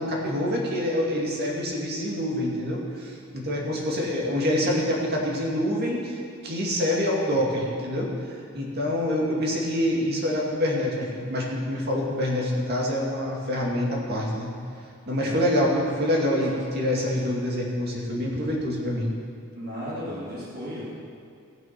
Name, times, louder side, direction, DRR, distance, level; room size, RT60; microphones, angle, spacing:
voice 1, 0.0-6.2 6.4-8.1 8.5-14.5 15.1-19.1, left 1 dB, 50° right, -2 dB, 2.3 m, -26 dB
voice 2, 19.5-20.9, equal, 80° right, -10 dB, 2.8 m, -34 dB
17.0 x 6.2 x 6.0 m, 2.3 s
head